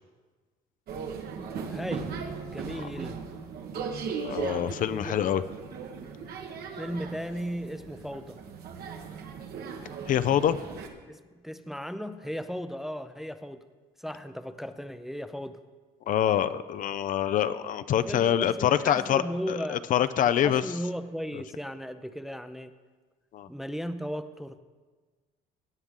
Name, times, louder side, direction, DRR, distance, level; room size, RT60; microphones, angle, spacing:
sound 1, 0.9-10.9, right 5 dB, 70° right, 1.2 m, -38 dB
voice 1, 1.3-2.2 2.5-3.2 4.9-5.2 6.8-8.4 11.1-13.6 14.0-15.6 17.9-20.0 20.4-22.7 23.5-24.6, equal, ahead, 10 dB, 0.5 m, -36 dB
voice 2, 4.2-5.4 10.1-10.6 16.1-20.6 23.3-23.5, left 10 dB, 50° left, 13 dB, 0.4 m, -25 dB
17.0 x 8.1 x 3.7 m, 1.4 s
cardioid pair, 110°, 17 cm